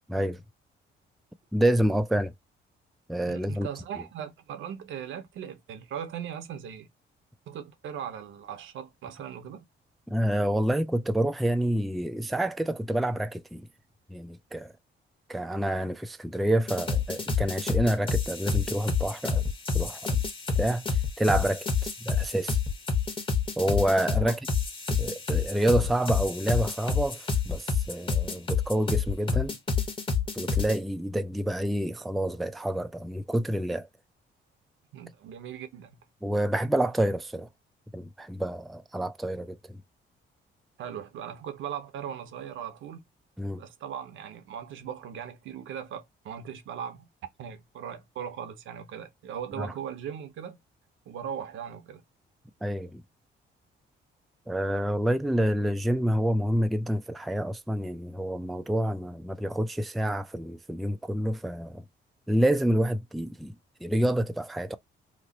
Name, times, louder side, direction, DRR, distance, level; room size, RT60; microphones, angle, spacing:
voice 1, 0.1-0.4 1.5-2.3 3.1-3.7 10.1-13.7 14.1-14.7 15.3-19.4 19.7-20.2 20.6-21.7 22.0-22.6 23.6-24.4 24.9-29.6 30.3-33.9 36.2-37.5 37.9-39.8 43.4-43.6 49.6-49.7 52.6-53.0 54.5-61.8 62.3-63.5 63.8-64.8, right 1 dB, ahead, 0.3 m, -28 dB
voice 2, 3.3-6.9 7.5-9.7 24.2-24.4 34.9-36.0 40.8-43.0 43.6-47.1 47.4-50.6 51.1-52.0, right 8 dB, 75° right, 0.8 m, -39 dB
sound 1, 16.7-30.8, left 5 dB, 25° left, 1.0 m, -28 dB
3.0 x 2.0 x 3.9 m
cardioid pair, 90°, 20 cm